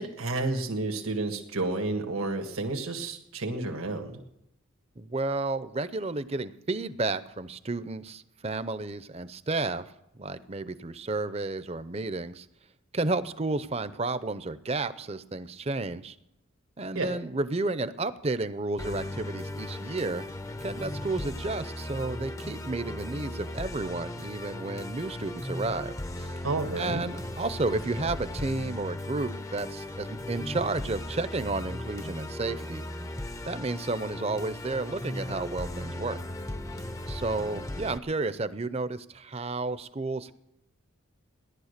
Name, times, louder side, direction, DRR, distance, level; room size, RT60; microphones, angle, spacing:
voice 1, 0.0-4.2 17.0-17.1 26.4-27.1, right 2 dB, 85° right, 3 dB, 1.7 m, -31 dB
voice 2, 5.0-12.5 12.9-16.2 16.8-20.3 20.6-26.4 26.8-32.8 33.5-36.2 37.1-40.3, right 3 dB, 30° right, 14 dB, 0.6 m, -32 dB
Musical instrument, 18.8-38.0, left 1 dB, 15° left, 0.6 m, -37 dB
17.0 x 11.5 x 6.6 m, 0.83 s
head